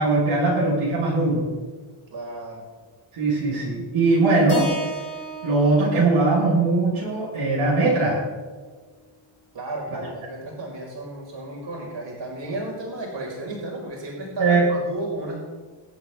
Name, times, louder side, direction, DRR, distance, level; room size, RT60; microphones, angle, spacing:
voice 1, 0.0-1.5 3.1-4.7 5.4-8.2 14.4-14.6, right 3 dB, 80° right, -5 dB, 4.5 m, -20 dB
voice 2, 2.1-2.7 9.5-15.4, right 2 dB, 60° right, -3 dB, 4.7 m, -33 dB
Keyboard (musical), 4.5-8.7, right 2 dB, 25° left, 3.6 m, -37 dB
24.0 x 8.4 x 3.5 m, 1.4 s
cardioid pair, 100°, 50 cm